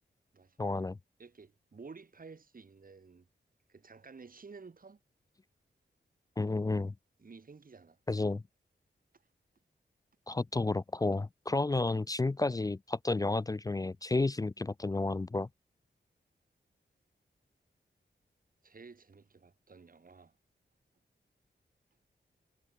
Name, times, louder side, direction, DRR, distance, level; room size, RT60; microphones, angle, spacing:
voice 1, 0.6-1.0 6.4-6.9 8.1-8.4 10.3-15.5, left 2 dB, 20° left, 0.4 m, -31 dB
voice 2, 1.2-3.3 3.7-5.0 7.2-8.0 18.6-20.4, right 4 dB, 45° right, 2.8 m, -52 dB
wide cardioid pair, 100°, 19 cm